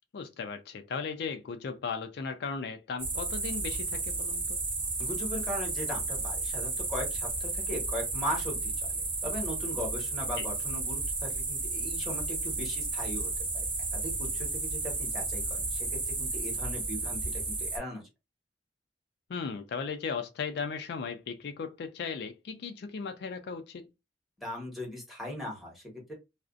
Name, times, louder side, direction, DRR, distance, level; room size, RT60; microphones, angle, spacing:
voice 1, 0.1-4.6 10.4-10.5 19.3-23.9, left 5 dB, 65° left, 0.4 m, -37 dB
sound 1, 3.0-17.8, right 3 dB, 30° right, 0.8 m, -33 dB
voice 2, 5.0-13.6 13.9-17.2 17.6-18.0 24.4-26.1, left 1 dB, ahead, 1.0 m, -38 dB
2.4 x 2.1 x 2.4 m
head